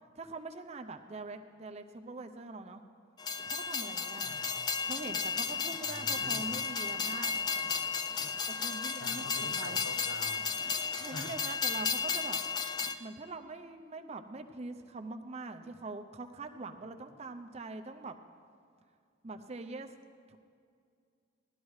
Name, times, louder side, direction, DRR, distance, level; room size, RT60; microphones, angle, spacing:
voice 1, 0.2-2.8 3.5-4.4 4.8-8.0 8.5-9.8 10.6-12.4 12.8-18.2 19.2-19.9 20.3-20.4, right 3 dB, 30° right, 6 dB, 0.5 m, -43 dB
Train, 3.2-12.9, left 5 dB, 20° left, 0.3 m, -34 dB
voice 2, 4.2-4.6 5.8-6.6 8.2-8.3 9.0-10.5 11.1-11.3, left 2 dB, 75° left, 6 dB, 0.9 m, -46 dB
18.0 x 12.5 x 3.2 m, 2.3 s
head